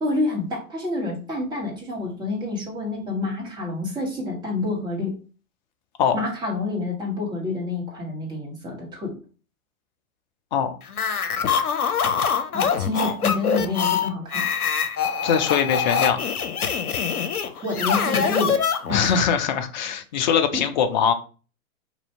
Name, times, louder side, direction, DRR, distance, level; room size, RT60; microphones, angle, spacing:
voice 1, 0.0-5.1 6.1-9.2 12.5-14.4 17.6-18.6 18.9-19.2 20.5-20.6, left 2 dB, 10° right, -3 dB, 1.1 m, -28 dB
sound 1, 10.9-19.2, left 7 dB, 85° left, 0.7 m, -24 dB
voice 2, 15.2-16.3 18.9-21.1, left 7 dB, 35° left, 7 dB, 0.4 m, -22 dB
2.7 x 2.6 x 4.2 m, 0.37 s
figure-of-eight pair, 115°, 43 cm